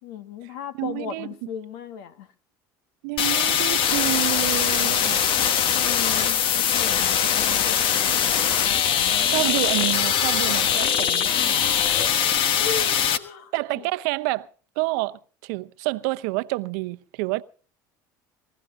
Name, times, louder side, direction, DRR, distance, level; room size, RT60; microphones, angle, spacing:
voice 1, 0.0-2.3 5.7-9.1 11.8-13.9, left 7 dB, 75° left, 1.7 m, -37 dB
voice 2, 0.8-1.5 3.0-5.3 9.3-11.6 13.5-14.5 14.8-17.4, right 22 dB, 75° right, 0.8 m, -28 dB
sound 1, 3.2-13.2, left 8 dB, 55° left, 1.4 m, -22 dB
21.0 x 15.5 x 3.7 m
hypercardioid pair, 85°, 10 cm